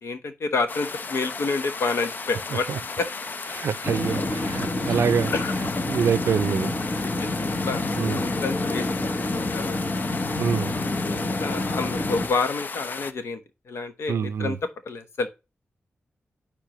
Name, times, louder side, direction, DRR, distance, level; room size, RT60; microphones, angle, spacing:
voice 1, 0.0-2.7 2.9-3.2 5.3-5.7 7.0-9.8 11.4-13.4 13.7-14.6 14.9-15.3, left 4 dB, 80° left, 1.0 m, -29 dB
sound 1, 0.7-13.1, left 4 dB, 45° left, 0.5 m, -35 dB
voice 2, 3.5-5.3 5.9-6.8 8.0-8.2 10.4-10.7 14.1-14.6, right 7 dB, 80° right, 0.4 m, -25 dB
sound 2, 3.8-12.3, left 2 dB, 30° left, 1.0 m, -28 dB
9.8 x 3.5 x 3.0 m
wide cardioid pair, 130°, 4 cm